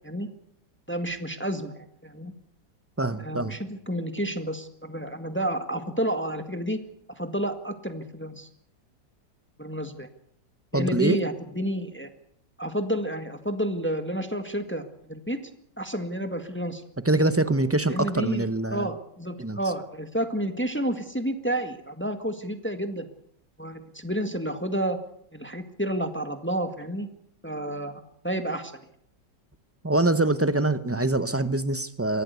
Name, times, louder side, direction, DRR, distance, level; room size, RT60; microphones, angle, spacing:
voice 1, 0.9-2.3 3.2-6.8 7.2-8.5 9.6-10.1 10.7-12.1 12.6-15.4 15.8-16.8 17.9-23.1 23.6-25.0 25.3-27.1 27.4-28.7, right 1 dB, 5° left, 7 dB, 1.7 m, -30 dB
voice 2, 3.0-3.6 10.7-11.2 17.0-18.9 19.4-19.6 29.8-32.2, right 2 dB, 20° right, 12 dB, 0.4 m, -24 dB
23.5 x 16.0 x 8.3 m, 0.68 s
omnidirectional pair, 1.9 m